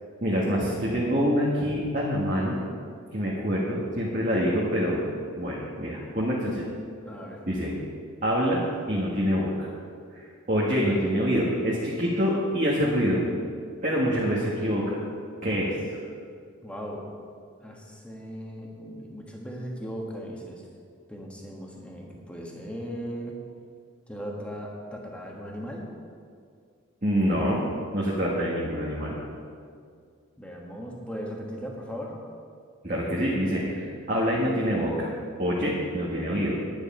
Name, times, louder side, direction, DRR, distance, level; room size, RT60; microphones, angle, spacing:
voice 1, 0.2-2.6 3.1-5.0 5.4-6.6 7.4-7.7 8.2-9.7 10.1-13.2 13.8-15.0 15.4-15.8 27.0-27.7 27.9-29.2 32.8-35.1 35.4-36.6, equal, 40° right, -5 dB, 1.6 m, -26 dB
voice 2, 7.0-7.4 16.6-17.1 17.6-20.6 21.1-23.4 24.1-25.9 30.4-32.1, equal, 5° left, -1 dB, 1.4 m, -37 dB
9.9 x 9.6 x 5.5 m, 2.2 s
head